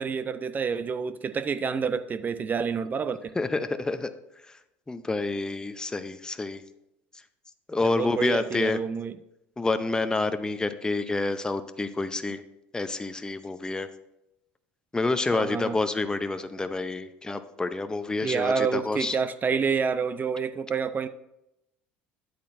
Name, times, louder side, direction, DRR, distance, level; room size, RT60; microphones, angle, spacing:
voice 1, 0.0-3.3 7.8-9.1 15.3-15.8 18.2-21.1, right 6 dB, 30° right, 12 dB, 0.6 m, -28 dB
voice 2, 3.4-4.1 4.9-6.6 7.7-8.8 9.6-12.4 12.7-13.9 14.9-19.2, left 3 dB, 15° left, 10 dB, 0.7 m, -28 dB
10.5 x 8.3 x 2.7 m, 0.85 s
hypercardioid pair, 75°, 6 cm